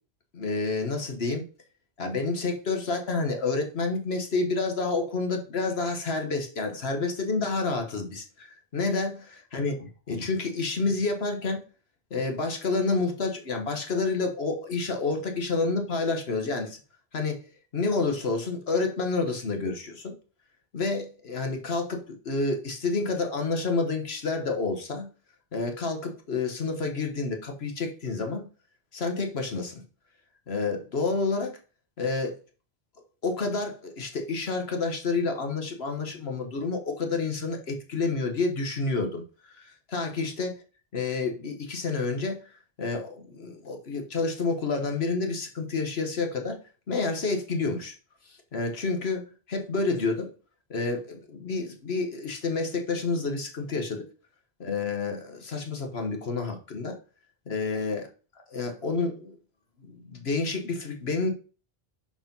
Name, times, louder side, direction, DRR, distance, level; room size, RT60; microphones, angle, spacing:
voice 1, 0.3-1.4 2.0-11.6 12.1-16.8 17.1-17.4 17.7-20.1 20.7-25.1 25.5-28.5 28.9-29.8 30.5-31.6 32.0-32.4 33.2-40.6 40.9-46.6 46.9-48.0 48.2-50.3 50.7-54.0 54.6-57.0 57.5-58.1 58.5-59.3 59.8-61.3, left 3 dB, 75° left, 1.4 m, -29 dB
5.9 x 5.0 x 5.3 m
omnidirectional pair, 1.1 m